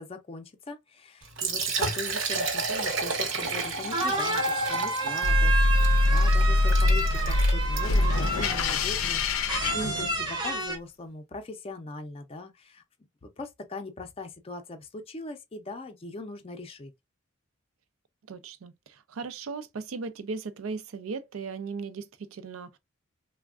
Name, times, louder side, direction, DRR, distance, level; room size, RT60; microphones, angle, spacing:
voice 1, 0.0-12.8 13.2-16.9, left 3 dB, 30° left, 0.5 m, -40 dB
Liquid, 1.2-8.1, right 3 dB, 65° right, 0.8 m, -31 dB
sound 1, 3.6-3.7 3.9-8.8 9.5-10.8, right 3 dB, 20° right, 0.6 m, -30 dB
sound 2, 5.2-10.5, left 2 dB, 90° left, 0.5 m, -24 dB
voice 2, 9.8-10.1 18.3-22.8, right 4 dB, 85° right, 0.5 m, -37 dB
3.3 x 2.2 x 2.3 m
head